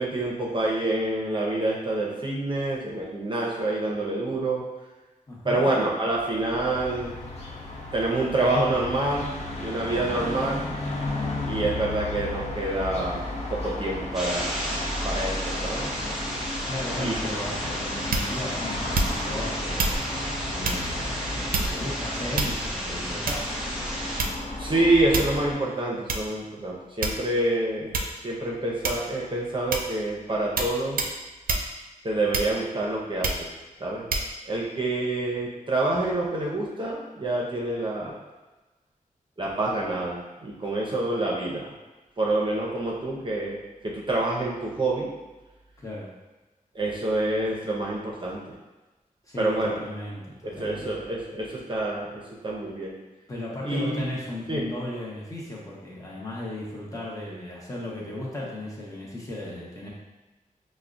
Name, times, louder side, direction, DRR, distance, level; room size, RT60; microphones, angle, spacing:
voice 1, 0.0-4.6 5.4-7.2 7.9-9.3 9.6-10.6 11.4-14.6 15.0-15.9 17.0-17.1 24.6-28.0 28.2-31.0 32.0-33.5 33.8-34.1 34.5-38.1 39.4-41.7 42.2-45.1 46.7-48.6 49.4-49.8 50.4-52.9 53.6-54.0 54.5-54.6, right 2 dB, 35° right, -4 dB, 0.6 m, -27 dB
voice 2, 5.3-5.7 16.7-23.6 45.8-46.1 49.3-50.9 53.3-59.9, left 1 dB, 25° left, -5 dB, 0.9 m, -36 dB
sound 1, 6.5-25.5, left 2 dB, 50° left, 0.6 m, -34 dB
sound 2, 14.1-24.2, equal, ahead, 0.8 m, -33 dB
sound 3, 18.1-18.5 18.9-19.4 19.8-20.0 20.6-20.9 21.5-21.9 22.4-22.8 23.3-23.6 24.2-24.6 25.1-25.4 26.1-26.2 27.0-27.4 27.9-28.2 28.8-29.2 29.7-30.0 30.6-30.7 31.0-31.2 31.5-31.7 32.3-32.7 33.2-33.5 34.1-34.3, right 3 dB, 90° right, 0.4 m, -27 dB
5.6 x 2.1 x 2.5 m, 1.2 s
wide cardioid pair, 130°, 14 cm